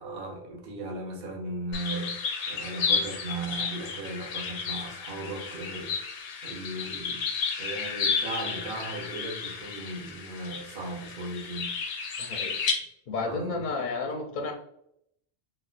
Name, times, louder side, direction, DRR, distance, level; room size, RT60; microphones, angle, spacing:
voice 1, 0.0-6.0 6.4-7.3 7.6-11.8 13.2-13.6, right 2 dB, 60° right, 0.9 m, -37 dB
sound 1, 1.7-12.7, left 5 dB, 85° left, 0.9 m, -32 dB
voice 2, 12.2-12.6 13.1-14.5, left 3 dB, 60° left, 0.6 m, -32 dB
4.1 x 2.1 x 2.3 m
omnidirectional pair, 1.1 m